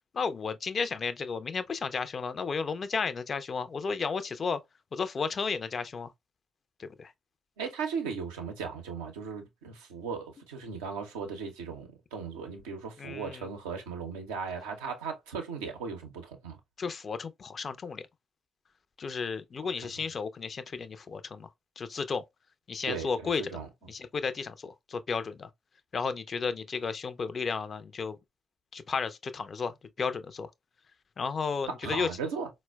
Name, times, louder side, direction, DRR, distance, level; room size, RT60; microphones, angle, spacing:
voice 1, 0.1-4.6 4.9-6.1 6.8-7.1 13.0-13.5 16.8-18.1 19.0-21.5 21.8-22.2 22.7-23.6 23.9-25.5 25.9-28.2 28.7-30.5 31.2-32.1, left 5 dB, 45° left, 0.3 m, -33 dB
voice 2, 7.6-16.6 19.6-19.7 20.0-20.1 22.8-23.7 31.8-32.5, right 5 dB, 80° right, 0.5 m, -37 dB
4.1 x 2.0 x 2.2 m
figure-of-eight pair, 40°, 0 cm